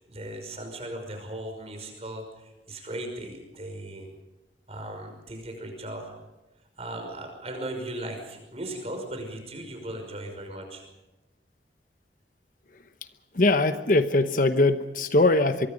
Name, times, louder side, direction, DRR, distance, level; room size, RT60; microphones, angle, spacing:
voice 1, 0.0-4.1 4.7-6.1 6.8-10.8, right 1 dB, 35° right, 4 dB, 5.8 m, -37 dB
voice 2, 13.3-15.7, left 2 dB, 50° left, 9 dB, 1.0 m, -21 dB
25.0 x 23.0 x 5.3 m, 1.0 s
head